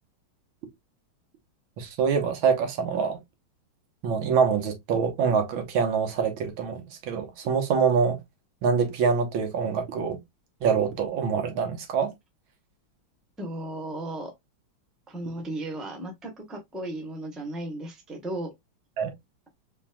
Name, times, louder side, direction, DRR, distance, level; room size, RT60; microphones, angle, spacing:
voice 1, 1.8-3.2 4.0-8.2 8.6-10.2 10.6-12.1 19.0-19.1, right 6 dB, 85° right, 1.8 m, -25 dB
voice 2, 13.4-14.3 15.1-18.5, right 1 dB, ahead, 0.7 m, -35 dB
4.4 x 3.4 x 2.2 m
omnidirectional pair, 2.2 m